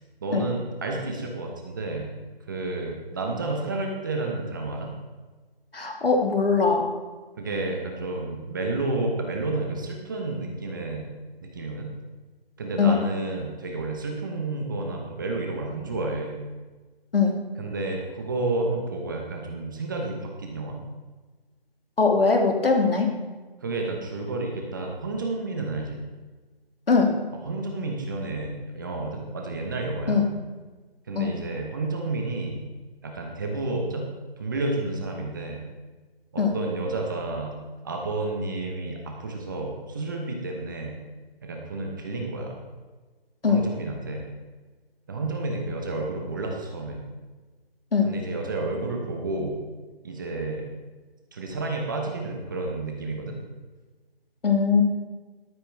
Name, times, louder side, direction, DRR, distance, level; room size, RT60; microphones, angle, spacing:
voice 1, 0.2-2.1 2.5-5.0 7.4-11.1 11.4-11.9 12.6-16.4 17.6-20.8 23.6-26.0 27.4-30.2 31.1-32.6 33.0-34.1 34.4-35.6 36.3-37.6 37.8-41.0 41.4-42.6 43.4-44.3 45.1-47.0 48.0-49.6 50.0-50.7 51.3-53.4, right 2 dB, 20° right, 1 dB, 1.1 m, -30 dB
voice 2, 5.7-6.9 12.8-13.0 17.1-17.3 22.0-23.1 26.9-27.1 30.1-30.3 31.1-31.3 36.4-36.5 43.4-43.6 47.9-48.1 54.4-54.8, left 5 dB, 70° left, 2 dB, 2.6 m, -21 dB
12.5 x 12.5 x 3.5 m, 1.3 s
figure-of-eight pair, 165°, 30 cm